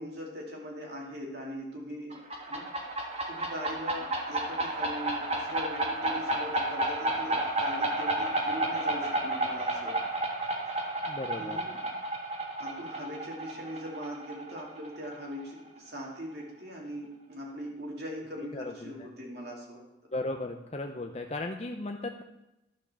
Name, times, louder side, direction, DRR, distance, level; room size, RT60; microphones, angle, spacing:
voice 1, 0.0-2.1 2.5-2.7 3.3-10.0 11.3-11.8 12.6-19.8, equal, 55° right, -2 dB, 2.6 m, -41 dB
sound 1, 2.1-15.5, right 1 dB, 30° right, 1.3 m, -32 dB
voice 2, 11.1-11.6 18.5-18.9 20.1-22.2, left 2 dB, 35° left, 4 dB, 0.6 m, -36 dB
11.5 x 5.9 x 6.7 m, 0.92 s
head